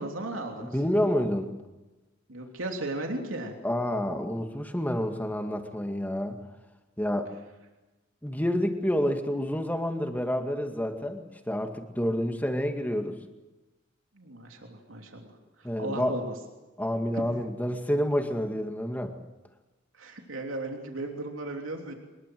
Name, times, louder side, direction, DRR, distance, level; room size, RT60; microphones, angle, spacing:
voice 1, 0.0-0.8 2.3-3.5 14.1-15.3 15.6-16.3 17.1-17.3 19.9-21.9, right 2 dB, 90° right, 2 dB, 3.1 m, -36 dB
voice 2, 0.6-1.5 3.6-6.4 7.0-7.3 8.2-13.2 15.6-16.1 16.8-19.2, equal, 10° left, 5 dB, 2.1 m, -28 dB
24.0 x 21.5 x 7.9 m, 1.1 s
head